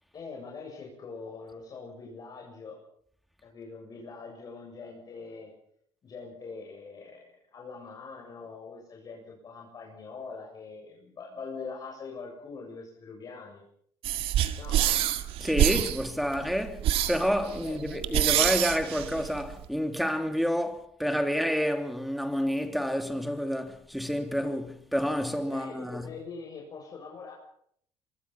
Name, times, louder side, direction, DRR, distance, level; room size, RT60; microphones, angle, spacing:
voice 1, 0.1-2.8 3.4-5.5 6.0-13.6 14.6-15.1 17.6-18.1 25.5-27.3, left 4 dB, 40° left, 7.8 m, -43 dB
sound 1, 14.0-19.6, right 12 dB, 70° right, 2.0 m, -27 dB
voice 2, 15.4-26.1, equal, ahead, 2.8 m, -29 dB
26.5 x 22.5 x 5.9 m
cardioid pair, 125°, 10 cm